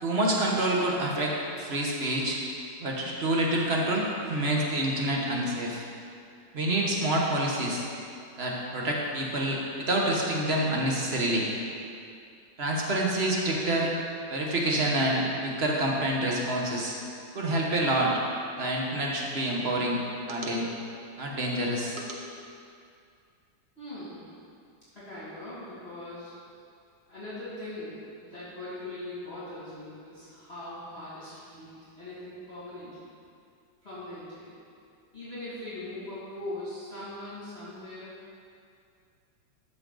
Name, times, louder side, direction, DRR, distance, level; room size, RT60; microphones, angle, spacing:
voice 1, 0.0-2.4 2.8-5.8 6.5-7.8 8.4-11.4 12.6-13.9 14.3-16.9 17.3-18.2 18.6-20.0 20.3-20.6 21.2-22.2, right 1 dB, 35° right, -2 dB, 1.3 m, -27 dB
voice 2, 23.8-24.3 24.9-26.3 27.1-33.1 33.8-34.5 35.1-38.1, left 1 dB, 30° left, -11 dB, 2.4 m, -41 dB
13.5 x 6.5 x 3.9 m, 2.4 s
omnidirectional pair, 2.2 m